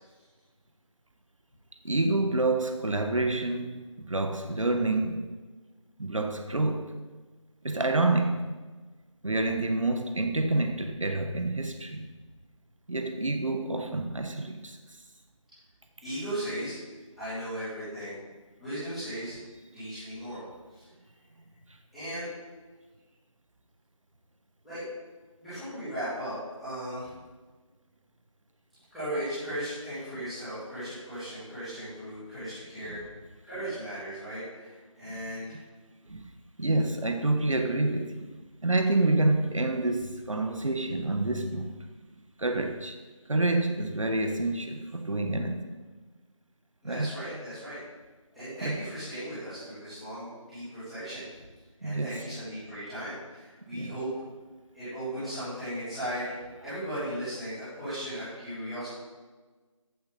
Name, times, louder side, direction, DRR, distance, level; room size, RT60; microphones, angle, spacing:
voice 1, 1.8-5.3 6.0-7.0 7.6-8.5 9.2-12.1 12.9-15.0 32.9-33.0 35.0-35.2 36.1-36.3 36.6-38.3 38.6-41.7 42.4-43.0 43.3-45.7 46.8-47.1 48.6-48.8 51.8-52.2 53.7-53.9, right 2 dB, 70° right, 1.3 m, -28 dB
voice 2, 16.0-16.8 17.2-18.1 18.6-19.4 19.7-20.4 20.7-20.8 21.9-22.3 24.6-24.8 25.4-27.1 28.9-33.0 33.4-35.6 46.8-47.8 48.3-51.3 51.8-54.1 54.7-56.4 56.6-58.9, equal, ahead, 3.0 m, -37 dB
15.0 x 9.1 x 4.3 m
figure-of-eight pair, 180°, 17 cm